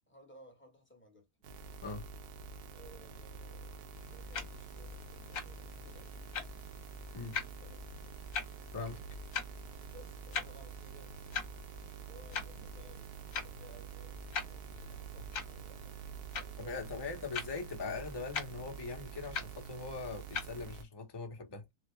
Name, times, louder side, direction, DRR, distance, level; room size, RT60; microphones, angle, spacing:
voice 1, 0.1-1.3 2.7-6.4 7.6-8.1 9.9-11.1 12.1-16.0 16.4-17.3, equal, 10° left, 0.7 m, -59 dB
sound 1, 1.4-20.8, right 3 dB, 70° right, 1.0 m, -48 dB
sound 2, 3.9-20.6, left 6 dB, 60° left, 1.0 m, -44 dB
voice 2, 16.6-21.7, left 4 dB, 40° left, 0.3 m, -41 dB
3.6 x 2.1 x 3.1 m
omnidirectional pair, 1.8 m